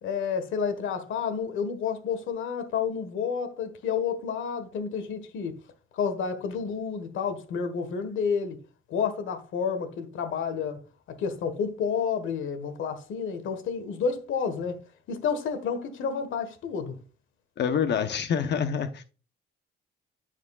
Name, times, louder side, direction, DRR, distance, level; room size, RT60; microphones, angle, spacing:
voice 1, 0.0-5.6 5.9-8.6 8.9-10.8 11.1-14.8 15.1-17.0, left 6 dB, 80° left, 1.5 m, -30 dB
voice 2, 17.6-19.0, left 7 dB, 60° left, 0.9 m, -26 dB
13.5 x 4.9 x 2.4 m
cardioid pair, 90°, 20 cm